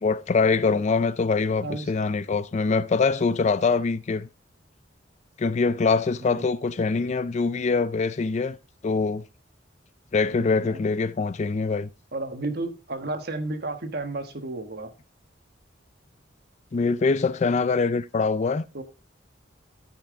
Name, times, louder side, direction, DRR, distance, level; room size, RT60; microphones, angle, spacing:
voice 1, 0.0-4.3 5.4-8.6 8.8-9.2 10.1-11.9 16.7-18.7, left 4 dB, 35° left, 0.4 m, -24 dB
voice 2, 1.6-1.9 6.2-6.4 10.2-10.8 12.1-14.9 18.7-18.8, right 2 dB, 55° right, 1.3 m, -33 dB
13.5 x 5.8 x 3.7 m
head